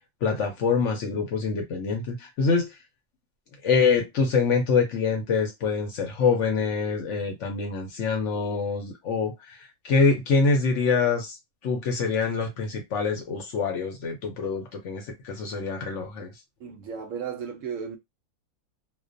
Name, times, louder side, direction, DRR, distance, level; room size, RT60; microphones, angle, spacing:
voice 1, 0.2-2.7 3.6-9.6 9.8-11.4 11.6-16.3, left 4 dB, 65° left, 0.8 m, -25 dB
voice 2, 16.6-18.0, right 7 dB, 70° right, 0.9 m, -34 dB
2.3 x 2.1 x 2.5 m
omnidirectional pair, 1.6 m